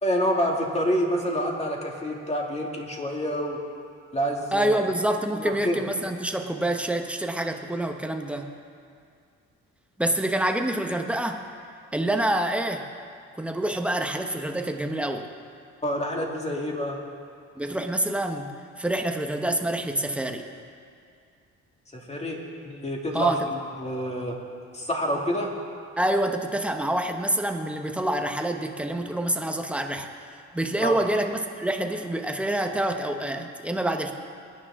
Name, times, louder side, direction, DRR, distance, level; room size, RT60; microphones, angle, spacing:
voice 1, 0.0-3.6 4.1-4.8 5.3-5.8 15.8-17.0 21.9-23.3 23.8-24.4 24.7-25.5 30.8-31.0, equal, 20° left, -1 dB, 2.4 m, -27 dB
voice 2, 4.5-8.5 10.0-11.4 11.9-12.9 13.4-15.3 17.6-18.5 18.8-20.5 23.1-23.5 26.0-34.1, right 1 dB, 5° right, 5 dB, 1.1 m, -27 dB
22.0 x 10.0 x 3.7 m, 2.3 s
cardioid pair, 90°, 30 cm